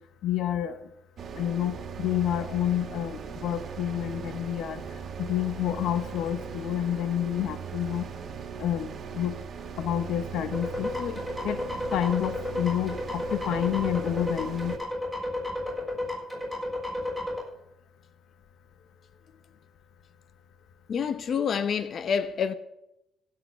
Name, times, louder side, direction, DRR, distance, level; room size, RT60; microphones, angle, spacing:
voice 1, 0.2-0.8 1.4-4.8 5.2-8.0 8.6-9.3 9.8-11.2 11.4-11.6 11.9-14.7, left 11 dB, 85° left, 0.8 m, -29 dB
sound 1, 1.2-14.8, right 6 dB, 55° right, 1.8 m, -39 dB
sound 2, 10.5-17.4, left 1 dB, 10° left, 6.7 m, -32 dB
voice 2, 20.9-22.5, left 7 dB, 55° left, 1.0 m, -27 dB
16.0 x 6.7 x 8.2 m
cardioid pair, 90°, 0 cm